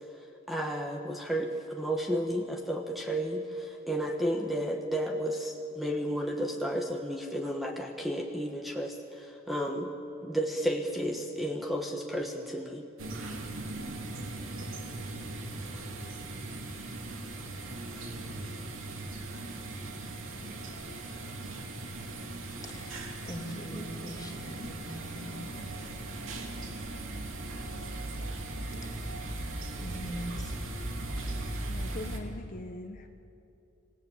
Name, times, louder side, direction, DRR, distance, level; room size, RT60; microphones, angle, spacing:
voice 1, 0.5-9.9 10.2-12.8, equal, ahead, 2 dB, 1.3 m, -32 dB
sound 1, 13.0-32.2, right 2 dB, 80° right, 2.7 m, -38 dB
voice 2, 22.6-25.4 28.8-29.3 29.8-30.5, equal, 20° left, 2 dB, 2.5 m, -42 dB
voice 3, 31.7-33.1, left 2 dB, 40° left, 4 dB, 1.0 m, -41 dB
26.5 x 17.5 x 8.4 m, 2.8 s
head